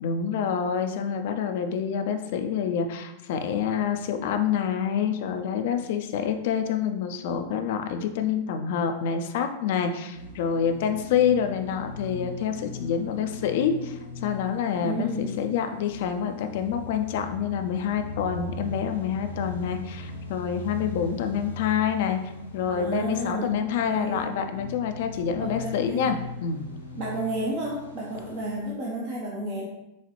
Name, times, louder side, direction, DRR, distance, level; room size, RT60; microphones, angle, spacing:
voice 1, 0.0-22.2 22.5-26.7, left 7 dB, 50° left, 6 dB, 0.5 m, -27 dB
sound 1, 10.1-28.6, left 2 dB, 90° left, 0.9 m, -40 dB
voice 2, 14.8-15.3 22.7-24.3 25.4-26.1 26.9-29.6, right 1 dB, 45° right, -4 dB, 0.8 m, -32 dB
6.9 x 2.4 x 3.0 m, 0.90 s
figure-of-eight pair, 90°, 0 cm